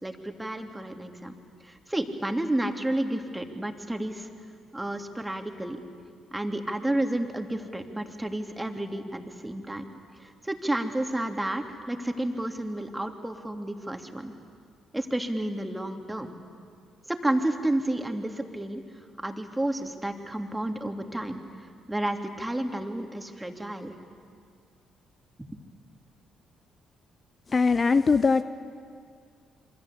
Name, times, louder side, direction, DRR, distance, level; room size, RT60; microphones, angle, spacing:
voice 1, 0.0-1.3 1.6-4.3 4.7-5.8 6.3-9.8 10.2-14.3 14.9-16.3 17.1-18.8 19.2-24.0 25.4-25.5, right 1 dB, 10° right, 5 dB, 3.1 m, -31 dB
voice 2, 27.5-28.4, left 4 dB, 40° left, 13 dB, 0.8 m, -21 dB
27.5 x 24.0 x 8.4 m, 2.2 s
hypercardioid pair, 50°, 0 cm